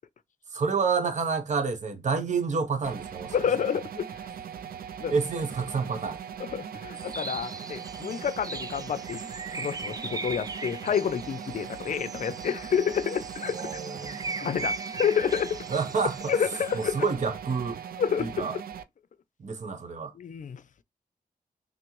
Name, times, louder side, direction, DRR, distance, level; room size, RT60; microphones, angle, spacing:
voice 1, 0.5-3.3 5.1-6.2 13.5-14.4 15.7-16.3 16.7-17.8 18.2-18.5 19.4-20.1, right 5 dB, 55° right, 0.9 m, -29 dB
sound 1, 2.8-18.8, right 8 dB, 85° right, 0.4 m, -40 dB
voice 2, 3.3-4.1 5.0-5.1 6.4-9.2 9.6-13.6 14.4-15.6 16.3-17.0 18.0-18.4 20.2-20.6, left 7 dB, 60° left, 0.5 m, -29 dB
sound 2, 6.9-16.9, right 3 dB, 25° right, 0.5 m, -39 dB
5.8 x 2.1 x 3.1 m
wide cardioid pair, 95°, 15 cm